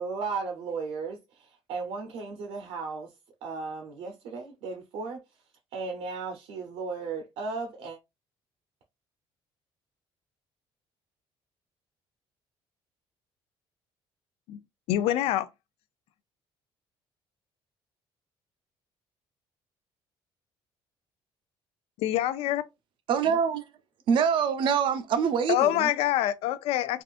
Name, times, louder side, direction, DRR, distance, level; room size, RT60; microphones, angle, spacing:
voice 1, 0.0-3.1 3.4-5.2 5.7-8.0, right 4 dB, 85° right, 0.8 m, -35 dB
voice 2, 14.9-15.5 22.0-22.6 25.5-27.0, left 13 dB, 75° left, 0.4 m, -25 dB
voice 3, 23.1-23.7 24.1-25.9, right 7 dB, 55° right, 0.5 m, -25 dB
3.6 x 2.4 x 2.4 m
cardioid pair, 165°, 10 cm